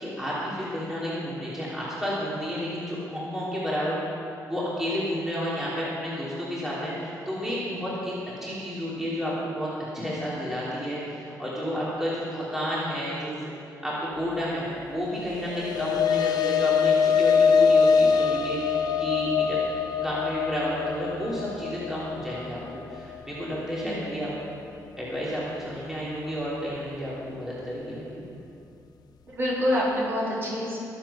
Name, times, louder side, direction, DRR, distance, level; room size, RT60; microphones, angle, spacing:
voice 1, 0.0-4.0 4.5-8.1 8.4-9.7 9.9-13.3 13.6-19.6 20.0-24.3 25.0-28.2, equal, 5° right, -9 dB, 3.2 m, -31 dB
sound 1, 15.2-23.8, left 6 dB, 75° left, 0.6 m, -23 dB
voice 2, 29.3-30.8, left 1 dB, 35° right, -6 dB, 4.1 m, -27 dB
23.0 x 7.9 x 5.8 m, 2.6 s
cardioid pair, 140°, 7 cm